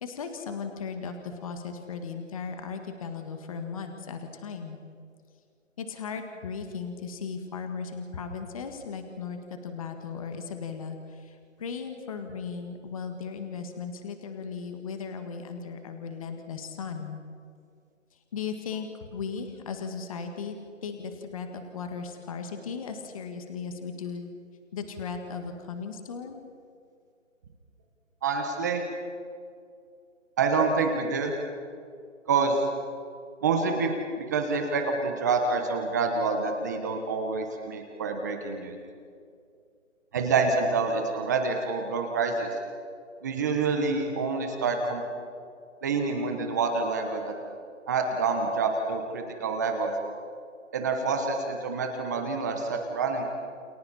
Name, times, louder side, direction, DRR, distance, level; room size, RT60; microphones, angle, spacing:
voice 1, 0.0-4.8 5.8-17.2 18.3-20.6 20.8-24.3 24.7-26.4, left 5 dB, 25° left, 6 dB, 1.9 m, -37 dB
voice 2, 28.2-28.8 30.4-31.3 32.3-32.6 33.4-38.7 40.1-42.5 43.2-45.0 45.8-47.3 47.9-49.9 50.7-53.2, right 4 dB, 15° right, 4 dB, 1.2 m, -27 dB
29.5 x 28.5 x 4.3 m, 2.3 s
hypercardioid pair, 165°, 39 cm